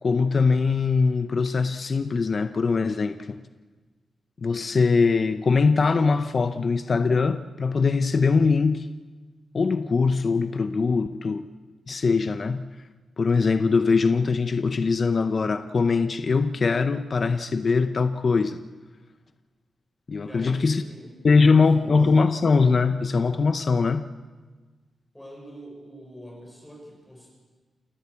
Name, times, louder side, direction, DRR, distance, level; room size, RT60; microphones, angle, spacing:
voice 1, 0.0-3.4 4.4-8.9 9.5-11.5 11.9-12.7 13.2-18.6 20.1-20.8 21.2-24.1, left 4 dB, 40° left, 9 dB, 0.6 m, -22 dB
voice 2, 20.2-22.1 25.1-27.3, equal, 5° left, -1 dB, 6.2 m, -45 dB
29.0 x 13.0 x 8.4 m, 1.3 s
wide cardioid pair, 160°, 0 cm